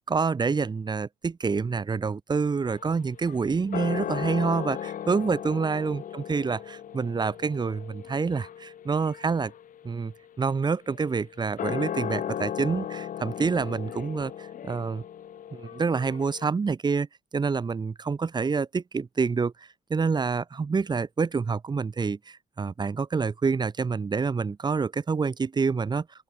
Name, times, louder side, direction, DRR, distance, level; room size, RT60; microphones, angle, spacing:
voice 1, 0.1-9.5 9.8-15.0 15.5-17.1 17.3-19.5 19.9-26.1, right 5 dB, 25° right, 1.6 m, -27 dB
sound 1, 2.7-16.5, left 9 dB, 50° left, 4.2 m, -37 dB
open air
cardioid pair, 110°, 17 cm